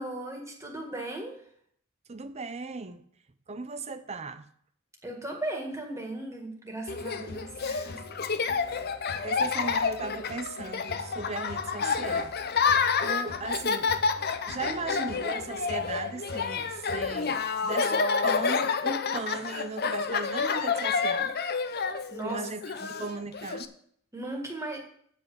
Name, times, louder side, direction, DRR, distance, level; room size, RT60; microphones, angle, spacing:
voice 1, 0.0-1.4 5.0-8.0 22.1-22.4 22.8-22.9 24.1-24.8, right 1 dB, 15° right, 1 dB, 1.8 m, -36 dB
voice 2, 2.1-3.0 3.5-4.4 8.8-12.7 13.0-13.9 14.5-21.3 22.2-22.6 23.0-23.7, right 3 dB, 30° right, 12 dB, 0.6 m, -37 dB
Laughter, 6.9-23.7, left 5 dB, 45° left, 0.7 m, -29 dB
8.9 x 5.6 x 7.8 m, 0.64 s
head